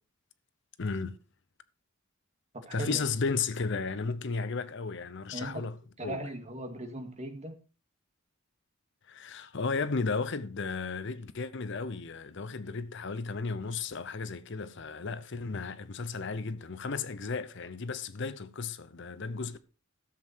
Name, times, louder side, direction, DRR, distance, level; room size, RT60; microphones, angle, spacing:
voice 1, 0.8-1.2 2.7-5.8 6.0-6.3 9.1-19.6, left 4 dB, 60° left, 0.7 m, -34 dB
voice 2, 2.5-3.0 5.3-5.6 6.0-7.5, right 1 dB, 35° right, 2.1 m, -38 dB
13.0 x 7.6 x 4.5 m
head